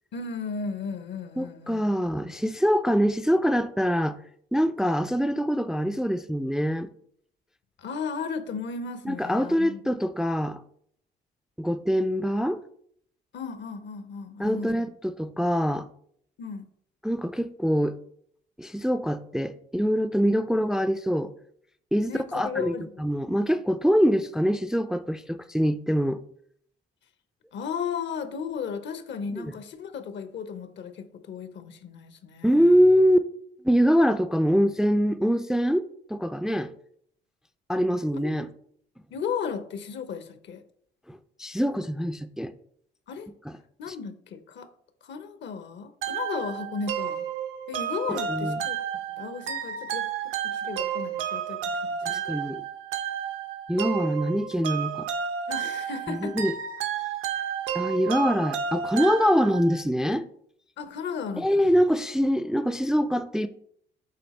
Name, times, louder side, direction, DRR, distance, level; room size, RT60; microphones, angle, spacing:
voice 1, 0.1-1.9 7.8-9.8 13.3-14.9 16.4-16.7 22.1-23.0 27.5-32.8 38.2-38.3 39.1-40.6 43.1-43.3 43.8-44.7 45.0-47.2 47.7-48.8 49.1-50.1 50.4-52.2 55.5-56.4 57.3-57.5 60.8-61.7, left 6 dB, 65° left, 0.8 m, -35 dB
voice 2, 1.4-4.2 4.5-6.9 9.1-10.6 11.6-12.6 14.4-15.9 17.0-18.0 18.6-21.3 21.9-22.7 23.0-26.2 29.3-29.5 32.4-33.2 33.6-36.7 37.7-38.5 41.1-42.5 43.9-44.0 48.3-48.6 52.1-52.6 53.7-55.1 56.1-56.5 57.7-60.2 61.4-63.5, equal, 5° right, 0.3 m, -24 dB
sound 1, 46.0-59.8, right 8 dB, 80° right, 0.6 m, -31 dB
7.7 x 3.5 x 4.2 m
cardioid pair, 90°, 20 cm